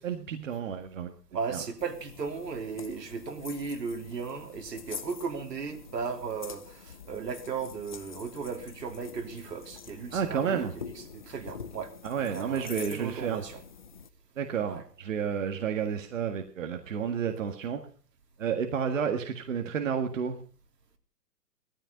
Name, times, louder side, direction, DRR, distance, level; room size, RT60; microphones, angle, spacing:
voice 1, 0.0-1.1 1.5-1.6 10.1-10.7 12.0-13.4 14.4-17.9 18.4-20.4, right 7 dB, 50° right, 1.7 m, -31 dB
voice 2, 1.3-13.6 14.6-14.8, right 5 dB, 75° right, 3.4 m, -36 dB
sound 1, 1.8-14.1, left 7 dB, 30° left, 0.7 m, -46 dB
17.5 x 14.0 x 5.3 m
hypercardioid pair, 170°, 49 cm